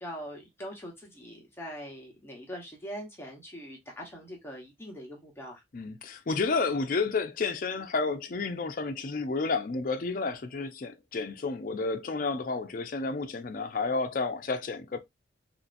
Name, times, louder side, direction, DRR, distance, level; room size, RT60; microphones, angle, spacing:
voice 1, 0.0-5.6, equal, 10° left, 0.9 m, -42 dB
voice 2, 5.7-15.0, left 4 dB, 45° left, 0.4 m, -31 dB
3.1 x 2.7 x 2.5 m
head